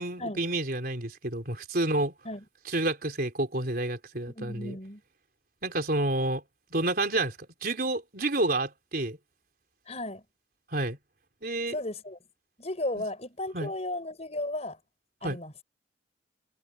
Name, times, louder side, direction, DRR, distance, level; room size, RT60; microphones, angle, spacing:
voice 1, 0.0-2.1 2.7-4.8 5.6-6.4 6.7-9.2 10.7-11.0 11.4-11.8 12.9-13.1 13.5-13.7 15.2-15.4, right 2 dB, 55° right, 4.3 m, -29 dB
voice 2, 4.3-5.0 9.9-10.2 11.7-12.2 12.6-14.8 15.2-15.5, left 1 dB, 35° left, 6.0 m, -35 dB
head